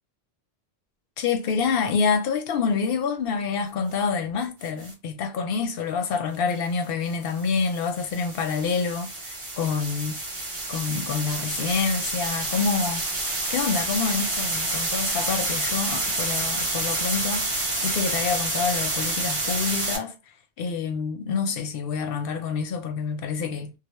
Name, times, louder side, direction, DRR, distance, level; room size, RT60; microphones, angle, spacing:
voice 1, 1.2-10.2 10.7-13.0 13.5-17.5 17.8-20.2 20.6-23.7, left 5 dB, 65° left, 0.7 m, -27 dB
sound 1, 4.6-4.9 7.1-20.0, right 2 dB, 30° right, 0.7 m, -28 dB
2.2 x 2.0 x 2.8 m
omnidirectional pair, 1.1 m